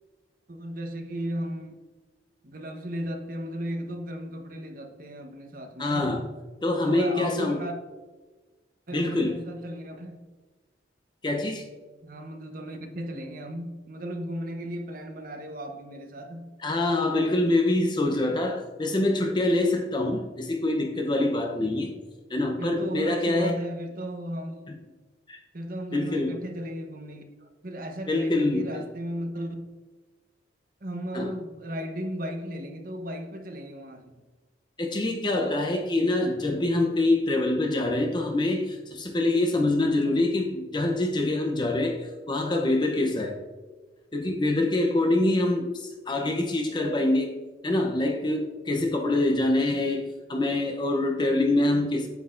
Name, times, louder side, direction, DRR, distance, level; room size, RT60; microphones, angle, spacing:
voice 1, 0.5-1.8 2.4-6.1 6.8-7.8 8.9-10.3 12.0-16.5 22.6-24.8 25.5-29.7 30.8-34.1, equal, 50° right, 1.0 m, -35 dB
voice 2, 5.8-6.3 6.6-7.6 8.9-9.4 11.2-11.6 16.6-21.9 22.3-23.6 24.7-24.8 25.3-25.4 25.9-26.4 28.1-28.9 31.1-31.3 34.8-43.4 44.1-47.3 47.6-52.1, left 2 dB, 25° left, 0.7 m, -25 dB
9.3 x 7.8 x 2.5 m
head